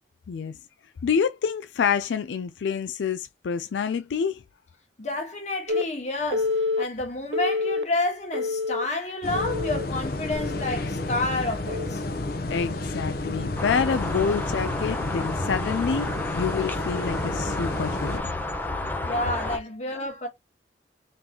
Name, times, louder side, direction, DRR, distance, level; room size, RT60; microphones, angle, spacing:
voice 1, 0.3-0.6 1.0-4.4 12.5-18.3 19.4-19.5, left 6 dB, 85° left, 0.4 m, -27 dB
voice 2, 5.0-12.0 19.0-20.3, left 2 dB, 40° left, 1.4 m, -29 dB
Telephone, 5.7-5.8 6.3-6.8 7.3-7.8 8.3-8.8 9.3-9.9 10.3-10.7 11.7-11.9, left 3 dB, 80° right, 0.5 m, -27 dB
sound 1, 9.2-18.2, left 2 dB, 55° left, 0.7 m, -31 dB
sound 2, 13.5-19.6, left 1 dB, 10° left, 0.7 m, -31 dB
3.8 x 3.5 x 2.9 m
head